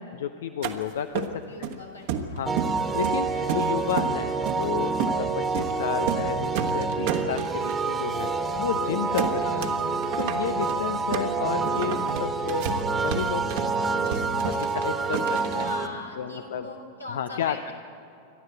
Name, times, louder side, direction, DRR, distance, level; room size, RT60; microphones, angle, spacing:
voice 1, 0.0-1.8 2.3-8.3 8.6-9.8 10.2-15.8 16.2-16.7 17.1-17.7, left 8 dB, 60° left, 10 dB, 0.7 m, -32 dB
sound 1, 0.6-0.7 1.1-1.7 2.1-2.8 3.0-4.1 4.4-4.6 5.0-5.2 5.5-5.7 6.0-6.3 6.5-7.8 8.2-8.3 8.5-8.8 9.2-9.8 10.0-15.7, right 7 dB, 50° right, 1.5 m, -31 dB
voice 2, 1.5-2.4 3.3-4.2 9.4-9.8 15.2-15.3 15.6-17.7, left 2 dB, 85° left, 0 dB, 3.4 m, -42 dB
sound 2, 2.4-15.9, right 4 dB, 20° right, 1.6 m, -27 dB
28.0 x 12.5 x 7.9 m, 2.7 s
figure-of-eight pair, 90°, 0 cm